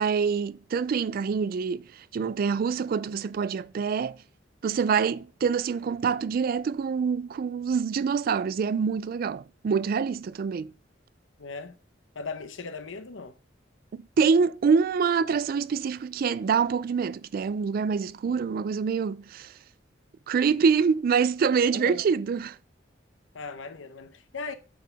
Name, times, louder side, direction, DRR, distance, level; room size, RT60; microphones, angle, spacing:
voice 1, 0.0-4.2 4.6-10.7 13.9-19.5 20.3-22.6, right 6 dB, 50° right, 0.3 m, -26 dB
voice 2, 11.4-11.8 12.1-13.4 21.7-22.1 23.3-24.5, left 4 dB, 80° left, 0.8 m, -38 dB
9.0 x 4.7 x 3.4 m
head